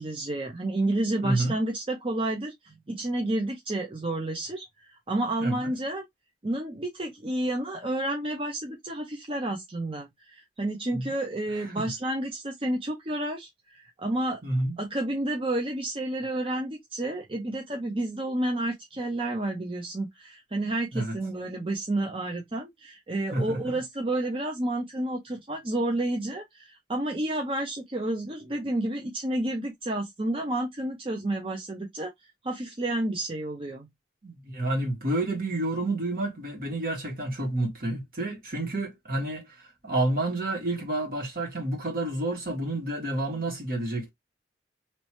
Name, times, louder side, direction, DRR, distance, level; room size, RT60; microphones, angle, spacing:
voice 1, 0.0-6.0 6.4-14.4 14.8-32.1 32.4-33.9, right 1 dB, 30° right, 0.7 m, -30 dB
voice 2, 1.2-1.5 5.4-5.7 10.9-11.1 11.5-11.9 14.4-14.7 20.9-21.1 23.3-23.8 34.2-39.4 39.8-44.1, right 2 dB, 55° right, 1.7 m, -29 dB
3.1 x 3.0 x 2.9 m
head